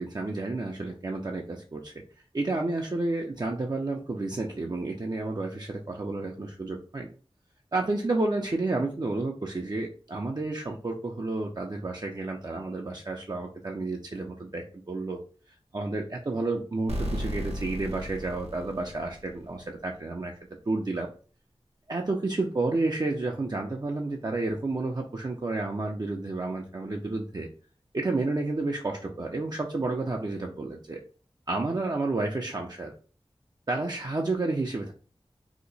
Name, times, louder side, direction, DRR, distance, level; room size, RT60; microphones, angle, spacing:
voice 1, 0.0-1.9 2.3-7.1 7.7-15.2 15.7-20.4 20.7-21.1 21.9-27.5 27.9-31.0 31.5-32.9 33.7-34.9, right 2 dB, 40° right, 0 dB, 0.5 m, -31 dB
sound 1, 16.9-19.6, equal, 90° right, 0.8 m, -35 dB
2.8 x 2.1 x 3.9 m, 0.38 s
wide cardioid pair, 50°, 10 cm